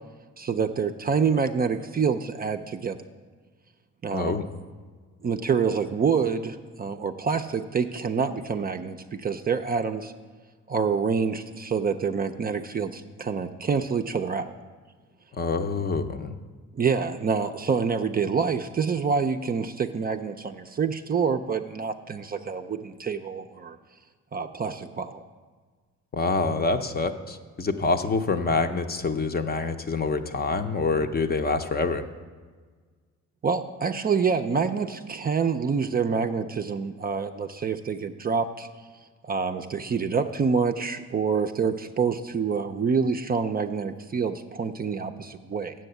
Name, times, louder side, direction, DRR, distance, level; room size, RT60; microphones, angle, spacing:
voice 1, 0.4-3.0 4.0-4.4 5.2-10.1 10.7-14.5 16.7-23.8 24.3-25.2 33.4-38.7 39.2-45.7, right 5 dB, 30° right, 6 dB, 0.4 m, -27 dB
voice 2, 4.1-4.5 15.3-16.3 26.1-32.0, left 3 dB, 30° left, 8 dB, 0.6 m, -26 dB
7.6 x 6.2 x 7.9 m, 1.5 s
cardioid pair, 90°, 30 cm